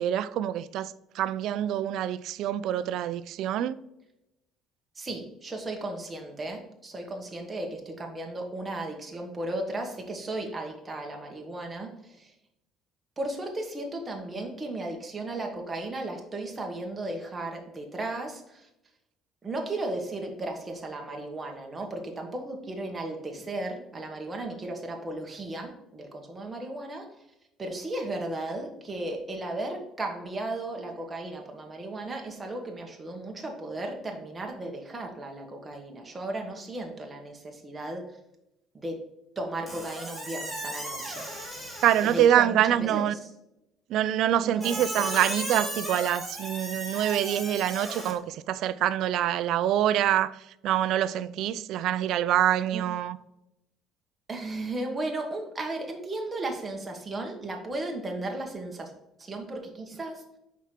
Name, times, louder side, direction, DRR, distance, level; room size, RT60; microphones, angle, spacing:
voice 1, 0.0-3.8 41.8-43.2 43.9-53.2, right 11 dB, 65° right, 0.4 m, -25 dB
voice 2, 5.0-12.3 13.2-18.7 19.4-27.1 27.6-38.0 38.7-39.0 39.4-41.2 42.0-43.1 44.4-44.8 52.7-52.8 54.3-58.9 59.2-60.2, right 2 dB, 15° right, 1.3 m, -35 dB
Squeak, 39.7-42.4 44.6-48.1, right 1 dB, 10° left, 2.2 m, -36 dB
5.9 x 4.7 x 4.4 m
cardioid pair, 150°, 0 cm